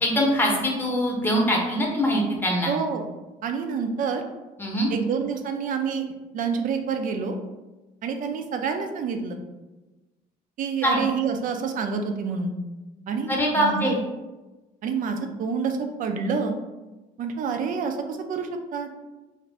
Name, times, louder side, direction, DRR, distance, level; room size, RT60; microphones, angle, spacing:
voice 1, 0.0-2.7 4.6-4.9 10.8-11.0 13.3-14.0, equal, 10° left, -2 dB, 0.7 m, -23 dB
voice 2, 2.7-3.0 3.4-4.2 4.9-6.1 6.3-7.4 8.0-9.4 10.6-12.5 13.1-14.0 14.8-16.6 17.2-18.9, right 5 dB, 50° right, 6 dB, 0.4 m, -28 dB
2.5 x 2.5 x 3.1 m, 1.1 s
cardioid pair, 110°, 17 cm